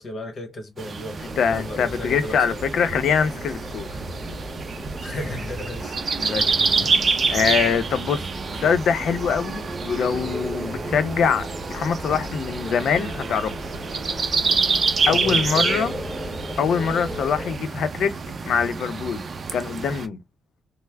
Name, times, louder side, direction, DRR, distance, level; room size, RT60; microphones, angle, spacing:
voice 1, 0.0-1.2 1.5-2.6 5.0-6.4 6.8-6.9 15.1-15.7, left 2 dB, 45° left, 1.1 m, -34 dB
sound 1, 0.8-20.1, right 4 dB, 40° right, 0.5 m, -27 dB
sound 2, 1.2-17.6, left 1 dB, 10° right, 1.6 m, -36 dB
voice 2, 1.4-3.9 6.2-6.4 7.3-8.2 8.6-13.5 15.1-15.9 16.6-18.1 18.5-19.2 19.5-20.2, left 6 dB, 75° left, 0.6 m, -23 dB
3.2 x 2.0 x 3.4 m
cardioid pair, 135°, 0 cm